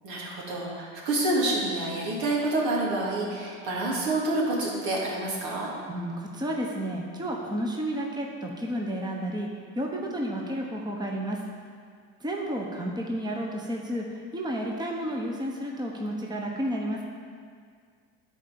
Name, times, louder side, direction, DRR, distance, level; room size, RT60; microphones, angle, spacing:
voice 1, 0.0-5.7, right 2 dB, 70° right, -3 dB, 2.5 m, -28 dB
voice 2, 5.9-9.5 9.7-11.4 12.2-17.0, equal, 10° right, 0 dB, 1.1 m, -31 dB
10.0 x 4.5 x 7.1 m, 2.1 s
supercardioid pair, 90°, 37 cm